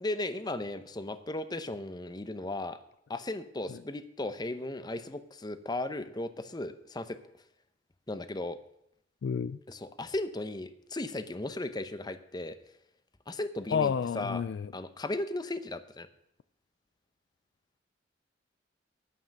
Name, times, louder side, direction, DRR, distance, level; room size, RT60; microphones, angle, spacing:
voice 1, 0.0-2.8 3.1-7.2 8.1-8.6 9.7-12.6 13.3-14.4 14.7-16.1, left 2 dB, 25° left, 11 dB, 0.8 m, -36 dB
voice 2, 9.2-9.6 13.7-14.7, left 6 dB, 65° left, 16 dB, 0.3 m, -30 dB
9.7 x 9.4 x 6.5 m, 0.78 s
head